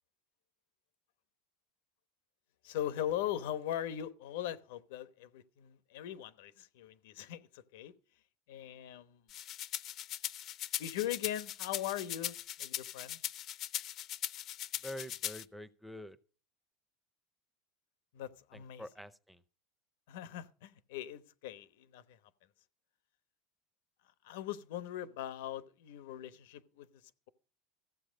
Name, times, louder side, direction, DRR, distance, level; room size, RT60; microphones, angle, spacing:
voice 1, 2.6-7.9 8.5-9.2 10.8-13.2 18.1-18.8 20.1-22.2 24.2-26.9, left 11 dB, 90° left, 1.0 m, -40 dB
sound 1, 9.3-15.4, left 12 dB, 40° left, 0.6 m, -40 dB
voice 2, 14.8-16.2 18.5-19.4, left 1 dB, ahead, 0.6 m, -46 dB
14.5 x 8.1 x 5.2 m
cardioid pair, 155°, 0 cm